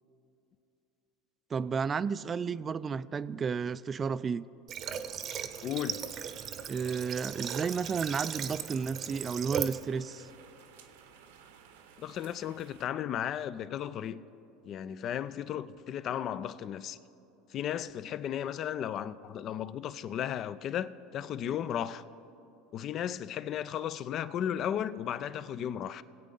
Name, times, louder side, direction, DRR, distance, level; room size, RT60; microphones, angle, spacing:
voice 1, 1.5-4.4 6.7-10.3, right 6 dB, 30° right, 0.4 m, -32 dB
Water / Water tap faucet, 4.7-9.8, right 8 dB, 45° right, 0.8 m, -37 dB
sound 1, 5.5-12.9, right 7 dB, 80° right, 1.0 m, -56 dB
voice 2, 5.6-6.0 12.0-14.2 14.6-17.0 17.5-22.0 22.7-26.0, left 10 dB, 45° left, 0.4 m, -35 dB
21.5 x 8.2 x 3.9 m
hypercardioid pair, 85°, 0 cm